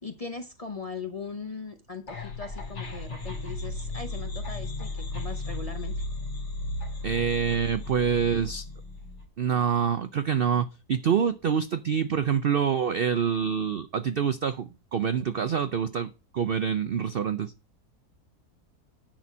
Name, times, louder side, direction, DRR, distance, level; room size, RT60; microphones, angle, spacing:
voice 1, 0.0-6.0, left 4 dB, 30° left, 0.7 m, -39 dB
sound 1, 2.1-9.2, left 2 dB, 45° left, 2.2 m, -35 dB
voice 2, 7.0-8.6 9.4-17.5, right 7 dB, 65° right, 0.5 m, -26 dB
10.5 x 4.3 x 6.1 m
omnidirectional pair, 1.7 m